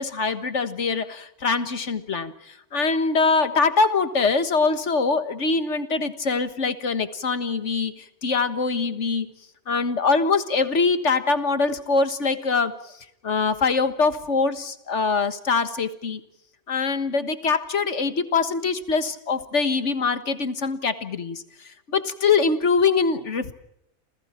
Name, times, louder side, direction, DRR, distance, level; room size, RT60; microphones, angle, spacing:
voice 1, 0.0-9.3 9.7-12.7 13.2-16.2 16.7-21.4 21.9-23.5, left 4 dB, 50° left, 10 dB, 1.7 m, -23 dB
28.5 x 28.5 x 4.5 m, 0.76 s
omnidirectional pair, 1.6 m